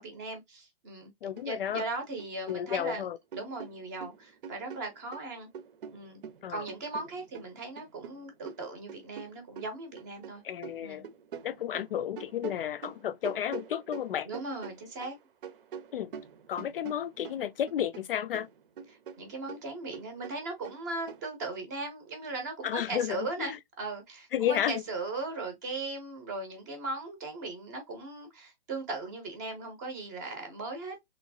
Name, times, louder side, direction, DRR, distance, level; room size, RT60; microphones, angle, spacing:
voice 1, 0.0-1.1 1.4-3.0 3.3-5.5 5.9-6.2 6.5-10.4 10.8-11.1 14.3-15.1 18.9-31.0, right 3 dB, 15° right, 0.7 m, -38 dB
voice 2, 1.2-1.8 2.5-3.2 6.4-6.7 10.4-11.1 11.4-14.3 15.9-16.1 16.5-18.5 22.6-23.6 24.3-24.8, left 10 dB, 65° left, 0.4 m, -32 dB
sound 1, 1.4-1.5 1.8-3.0 3.3-5.3 5.5-10.3 10.6-15.2 15.4-18.1 18.3-21.2, right 7 dB, 60° right, 0.7 m, -45 dB
3.1 x 3.0 x 2.6 m
hypercardioid pair, 175°, 31 cm